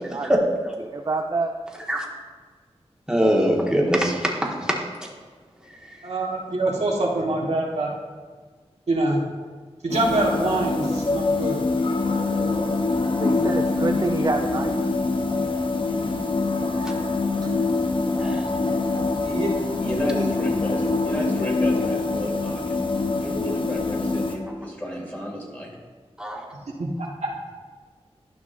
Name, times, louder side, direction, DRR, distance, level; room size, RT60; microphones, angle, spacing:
voice 1, 0.9-1.5 13.2-14.7 17.4-17.5, right 3 dB, 35° right, 3 dB, 0.5 m, -26 dB
voice 2, 3.1-4.3 4.6-4.7 18.2-18.4 26.2-26.4, equal, 5° right, -2 dB, 1.5 m, -22 dB
voice 3, 6.0-7.9 8.9-9.2 9.8-11.6 19.2-19.5 26.8-27.1, right 2 dB, 80° right, -2 dB, 1.4 m, -24 dB
sound 1, 9.9-24.4, left 3 dB, 50° left, 0.9 m, -24 dB
voice 4, 19.8-22.9 23.2-25.7, equal, 15° left, -3 dB, 2.3 m, -32 dB
11.5 x 5.9 x 2.6 m, 1.5 s
wide cardioid pair, 55°, 11 cm